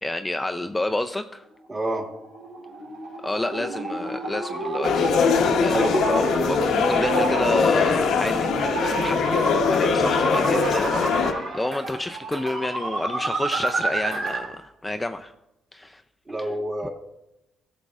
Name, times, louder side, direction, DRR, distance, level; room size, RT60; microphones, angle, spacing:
voice 1, 0.0-1.4 3.2-5.1 5.6-15.3 15.7-16.0, left 2 dB, 15° left, 6 dB, 0.4 m, -29 dB
voice 2, 1.7-2.1 5.6-6.0 16.3-16.9, right 1 dB, 30° right, 0 dB, 2.0 m, -27 dB
sound 1, 2.0-14.6, right 2 dB, 75° right, 2.6 m, -29 dB
sound 2, 4.8-11.3, left 6 dB, 80° left, 0.8 m, -22 dB
sound 3, 6.2-6.3 6.6-7.0 8.3-8.7 9.0-9.4 11.7-12.0 12.3-12.6 13.5-13.8 14.1-14.4, right 3 dB, 55° right, 2.6 m, -42 dB
14.5 x 6.8 x 2.4 m, 0.88 s
cardioid pair, 90°, 0 cm